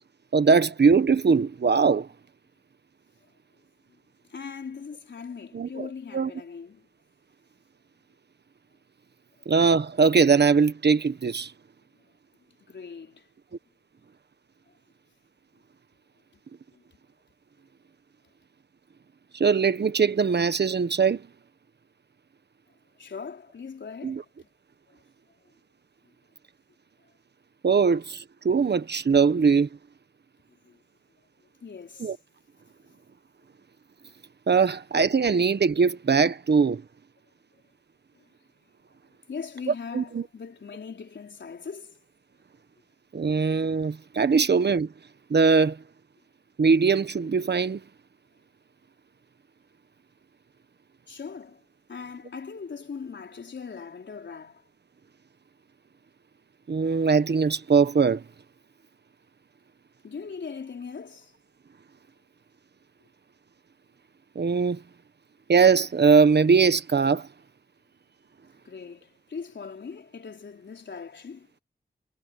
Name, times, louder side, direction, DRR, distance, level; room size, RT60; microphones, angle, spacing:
voice 1, 0.3-2.1 5.5-5.9 6.1-6.3 9.5-11.5 19.3-21.3 24.0-24.2 27.6-29.7 32.0-32.2 34.5-36.8 39.9-40.2 43.1-44.9 45.3-45.8 46.6-47.8 56.7-58.2 64.3-64.8 65.5-67.3, right 5 dB, 65° right, 1.4 m, -21 dB
voice 2, 4.3-6.9 9.4-9.5 12.7-13.3 16.7-16.8 23.0-24.5 24.9-25.0 25.4-25.5 30.6-30.8 31.6-32.2 32.8-33.0 38.1-38.3 39.3-42.0 51.1-51.6 51.9-54.7 60.0-61.4 68.6-71.5, left 5 dB, 85° left, 4.2 m, -40 dB
cardioid pair, 55°, 18 cm